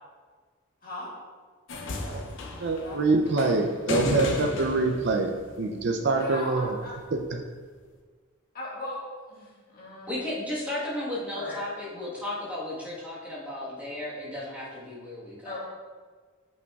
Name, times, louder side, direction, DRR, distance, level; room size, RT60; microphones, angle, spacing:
sound 1, 1.7-6.1 7.2-7.3, left 2 dB, 60° left, 0.6 m, -33 dB
voice 1, 2.6-6.8, right 3 dB, 55° right, 3 dB, 0.4 m, -25 dB
voice 2, 6.2-6.9 8.5-9.0 9.3-10.1 11.4-11.6 15.5-15.6, left 2 dB, 40° left, -6 dB, 1.7 m, -37 dB
voice 3, 10.1-15.6, left 1 dB, 5° right, -7 dB, 1.3 m, -34 dB
8.2 x 5.0 x 2.4 m, 1.5 s
head